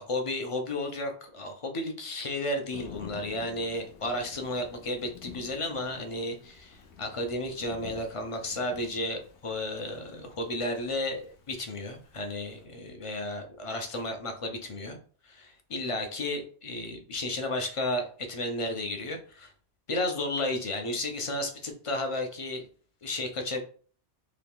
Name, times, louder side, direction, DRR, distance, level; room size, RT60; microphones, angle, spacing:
voice 1, 0.0-15.0 15.2-19.5 19.9-22.7 23.0-23.6, left 1 dB, 45° left, 5 dB, 0.4 m, -33 dB
Thunder / Rain, 2.7-12.6, left 6 dB, 90° left, 1.0 m, -50 dB
2.9 x 2.3 x 3.5 m, 0.42 s
omnidirectional pair, 1.1 m